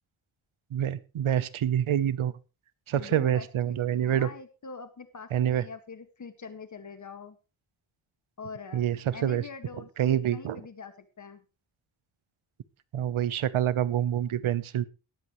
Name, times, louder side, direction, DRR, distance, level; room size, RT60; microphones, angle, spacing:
voice 1, 0.7-2.4 2.9-4.3 5.3-5.6 8.7-9.4 10.0-10.6 12.9-14.8, right 10 dB, 85° right, 16 dB, 1.0 m, -27 dB
voice 2, 2.9-7.4 8.4-8.9 9.1-11.4, left 5 dB, 35° left, 9 dB, 1.9 m, -44 dB
17.5 x 13.0 x 3.2 m, 0.31 s
wide cardioid pair, 175°, 48 cm